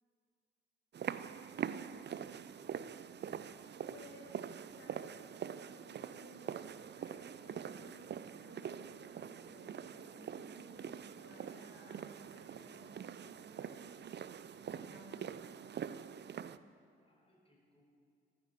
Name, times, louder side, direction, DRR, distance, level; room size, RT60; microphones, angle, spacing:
sound 1, 0.9-16.6, right 8 dB, 35° right, 0.6 m, -44 dB
voice 1, 1.9-2.8 17.0-17.8, equal, 20° left, -1 dB, 4.9 m, -71 dB
voice 2, 3.9-4.4 4.8-14.0 14.7-15.5, left 1 dB, 50° left, -4 dB, 4.3 m, -59 dB
19.0 x 15.0 x 4.5 m, 2.3 s
figure-of-eight pair, 40°, 30 cm